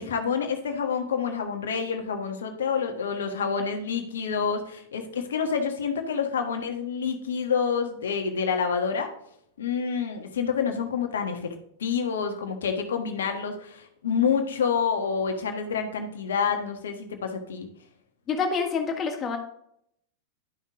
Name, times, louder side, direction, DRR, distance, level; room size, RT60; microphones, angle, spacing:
voice 1, 0.0-9.1 9.6-11.5 11.8-17.7, left 6 dB, 65° left, 5 dB, 1.4 m, -28 dB
voice 2, 18.3-19.4, left 5 dB, 25° left, 3 dB, 1.8 m, -27 dB
11.5 x 5.7 x 3.6 m, 0.70 s
figure-of-eight pair, 90°, 0 cm